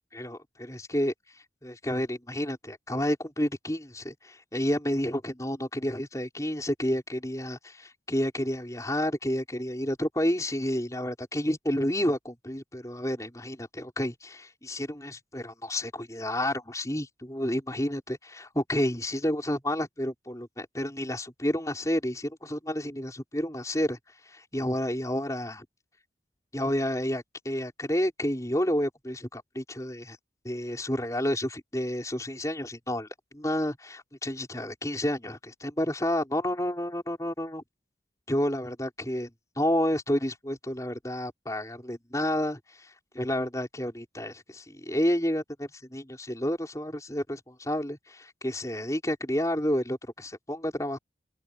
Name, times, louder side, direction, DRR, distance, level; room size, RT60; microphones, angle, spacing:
voice 1, 0.1-1.1 1.6-24.0 24.3-25.7 26.5-30.2 30.4-33.1 33.3-37.6 38.3-39.3 39.6-51.0, equal, 20° left, 5.7 m, -30 dB
open air
head